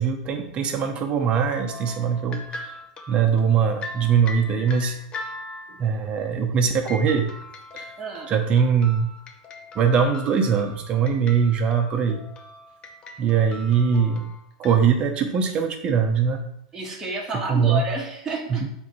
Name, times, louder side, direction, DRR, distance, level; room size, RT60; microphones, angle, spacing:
voice 1, 0.0-2.6 3.1-5.0 5.8-7.3 7.7-7.9 8.3-9.1 9.7-12.2 13.2-14.3 14.6-16.4 17.5-17.8 18.5-18.7, right 6 dB, 30° right, 4 dB, 1.0 m, -21 dB
sound 1, 1.5-5.9 6.8-14.8, left 2 dB, 25° left, 0.8 m, -40 dB
voice 2, 8.0-8.3 16.7-18.7, right 3 dB, 15° right, -4 dB, 1.7 m, -30 dB
8.2 x 3.6 x 3.3 m, 0.73 s
supercardioid pair, 125°, 4 cm